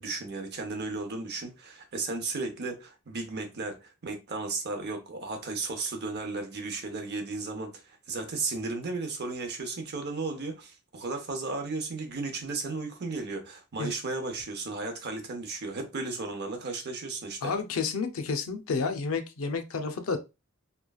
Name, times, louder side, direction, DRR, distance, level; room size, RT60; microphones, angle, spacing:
voice 1, 0.0-17.5, right 3 dB, 50° right, 0.7 m, -34 dB
voice 2, 17.4-20.2, left 4 dB, 70° left, 0.5 m, -30 dB
3.0 x 2.3 x 2.3 m
head